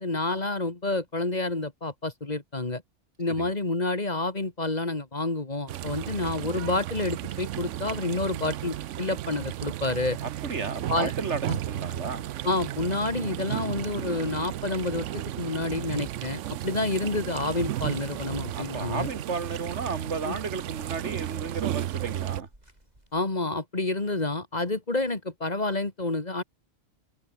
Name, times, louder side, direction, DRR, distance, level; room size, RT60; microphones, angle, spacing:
voice 1, 0.0-2.8 3.2-10.2 10.9-11.1 11.5-11.6 12.4-19.1 20.2-20.4 23.1-26.4, left 2 dB, 35° left, 2.2 m, -29 dB
sound 1, 5.7-22.4, right 13 dB, 85° right, 1.0 m, -34 dB
voice 2, 10.2-12.2 18.5-22.5, right 5 dB, 70° right, 2.0 m, -33 dB
sound 2, 17.9-23.2, right 1 dB, 35° right, 7.1 m, -59 dB
open air
omnidirectional pair, 1.2 m